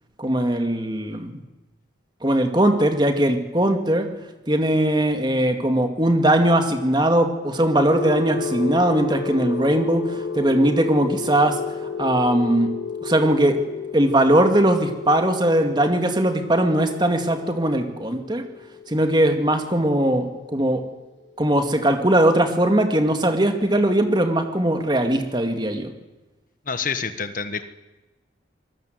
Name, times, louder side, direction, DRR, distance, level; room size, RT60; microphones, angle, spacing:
voice 1, 0.2-1.4 2.2-4.1 4.5-11.6 12.0-12.7 13.0-13.6 13.9-18.4 18.9-20.8 21.4-25.9, right 1 dB, 25° right, 5 dB, 2.3 m, -20 dB
sound 1, 7.4-21.3, left 4 dB, 75° left, 1.2 m, -32 dB
voice 2, 26.6-27.7, left 5 dB, 45° left, 10 dB, 1.4 m, -27 dB
26.0 x 20.0 x 8.0 m, 1.1 s
head